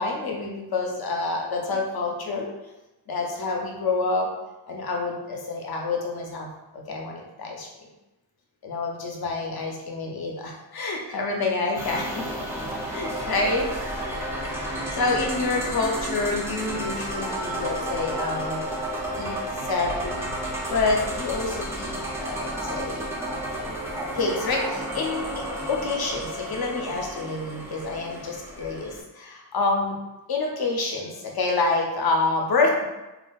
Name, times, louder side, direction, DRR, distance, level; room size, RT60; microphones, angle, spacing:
voice 1, 0.0-2.5 3.1-4.3 4.7-7.7 8.6-12.3 12.9-13.7 14.9-18.6 19.2-19.4 19.6-20.3 20.7-23.1 24.1-30.0 30.3-32.8, left 3 dB, 60° left, 0 dB, 0.6 m, -27 dB
sound 1, 11.7-29.0, right 1 dB, 5° right, 0.4 m, -32 dB
3.4 x 2.4 x 2.2 m, 1.0 s
wide cardioid pair, 130°, 41 cm